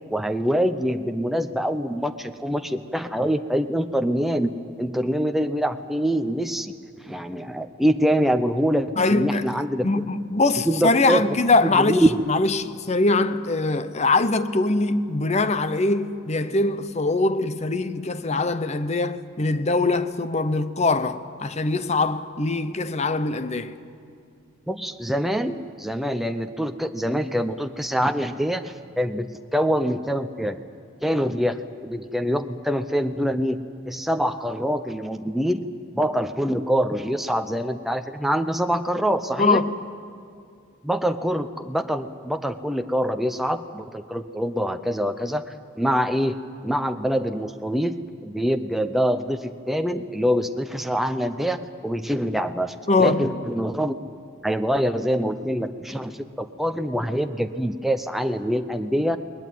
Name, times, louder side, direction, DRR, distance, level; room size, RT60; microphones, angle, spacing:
voice 1, 0.1-9.9 10.7-11.4 11.7-12.2 24.7-30.6 31.0-33.6 33.9-35.6 35.9-39.6 40.8-45.4 45.8-46.4 46.6-48.0 48.2-54.0 54.4-59.2, equal, ahead, 0.6 m, -25 dB
voice 2, 9.0-9.6 9.8-23.8 39.4-39.7 52.9-53.3, left 3 dB, 30° left, 0.7 m, -22 dB
20.5 x 19.5 x 9.3 m
head